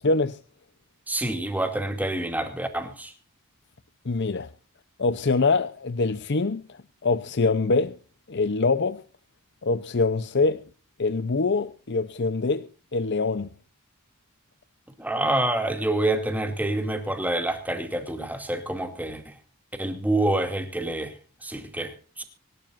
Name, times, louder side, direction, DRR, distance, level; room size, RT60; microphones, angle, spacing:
voice 1, 0.0-0.4 4.0-4.5 5.0-8.0 8.3-9.0 9.6-10.6 11.0-13.5, left 3 dB, 50° left, 0.7 m, -24 dB
voice 2, 1.1-3.1 15.0-19.3 19.8-21.2 21.4-22.2, right 1 dB, 5° right, 2.4 m, -27 dB
25.0 x 12.0 x 2.6 m
head